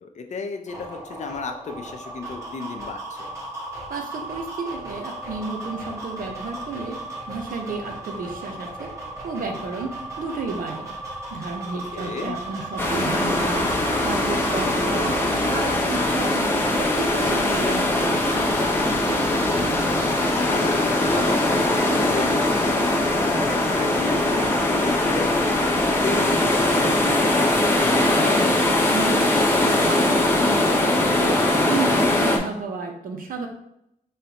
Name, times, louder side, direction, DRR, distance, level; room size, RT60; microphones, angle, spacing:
voice 1, 0.0-3.3 11.9-12.3 19.2-19.9 20.3-25.7 26.0-27.3, left 4 dB, 55° left, 5 dB, 0.5 m, -34 dB
sound 1, 0.7-15.8, right 2 dB, 20° right, 1.0 m, -36 dB
voice 2, 3.9-7.0 7.3-8.9 9.2-10.9 11.3-13.7 14.0-15.2 15.5-16.5 16.8-18.3 28.0-33.5, right 4 dB, 90° right, 3 dB, 0.8 m, -32 dB
sound 2, 12.8-32.4, left 1 dB, 15° left, 0.7 m, -21 dB
5.3 x 3.2 x 2.9 m, 0.77 s
wide cardioid pair, 165°, 14 cm